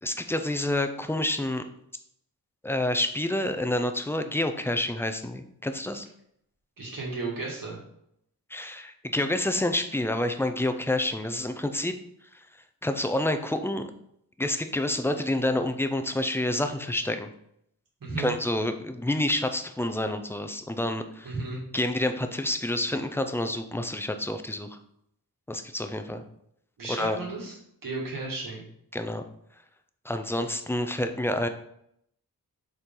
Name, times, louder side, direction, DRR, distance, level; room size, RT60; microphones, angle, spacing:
voice 1, 0.0-1.6 2.6-6.1 8.5-11.9 12.8-13.8 14.4-17.3 18.2-21.3 21.7-24.8 25.5-26.2 26.9-27.2 28.9-29.2 30.0-31.5, left 1 dB, 5° left, 8 dB, 0.5 m, -28 dB
voice 2, 6.8-7.8 18.0-18.3 21.2-21.6 26.8-27.5 27.8-28.7, right 3 dB, 60° right, -4 dB, 2.3 m, -34 dB
6.7 x 4.5 x 3.8 m, 0.74 s
wide cardioid pair, 135°, 37 cm